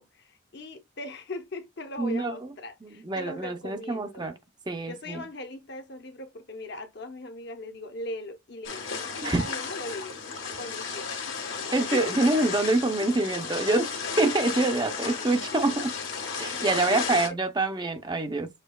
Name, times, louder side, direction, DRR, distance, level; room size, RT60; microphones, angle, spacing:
voice 1, 0.0-4.3 4.9-10.2 10.6-11.1 11.9-12.0 16.9-17.2, left 2 dB, 55° left, 0.8 m, -39 dB
voice 2, 2.0-2.3 2.8-4.3 4.7-5.2 9.2-9.4 11.7-13.9 14.2-15.9 16.4-18.5, right 2 dB, 20° right, 0.5 m, -26 dB
sound 1, 8.6-17.3, left 5 dB, 70° left, 1.5 m, -33 dB
6.6 x 2.8 x 2.3 m
head